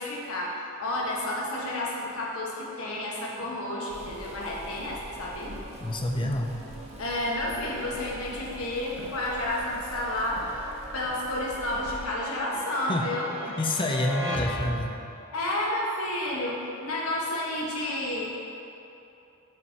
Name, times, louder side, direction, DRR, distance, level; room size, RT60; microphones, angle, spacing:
voice 1, 0.0-5.6 7.0-13.3 15.3-18.3, left 1 dB, 70° left, -3 dB, 1.2 m, -31 dB
sound 1, 2.5-15.2, equal, 15° right, 0.7 m, -41 dB
sound 2, 3.3-3.6 4.1-4.3 4.8-5.1 5.5-6.0 6.2-6.5 6.9-7.4 7.6-7.8 8.3-8.5 9.0-9.2 9.7-9.9 10.4-10.6 11.0-11.3 11.7-12.0 12.5-12.7, right 1 dB, 65° right, 1.0 m, -48 dB
sound 3, 3.9-12.0, equal, 30° right, 0.9 m, -45 dB
voice 2, 5.8-6.6 12.9-13.0 13.4-15.0, left 1 dB, 20° left, 1 dB, 0.4 m, -28 dB
9.0 x 5.8 x 2.8 m, 2.9 s
head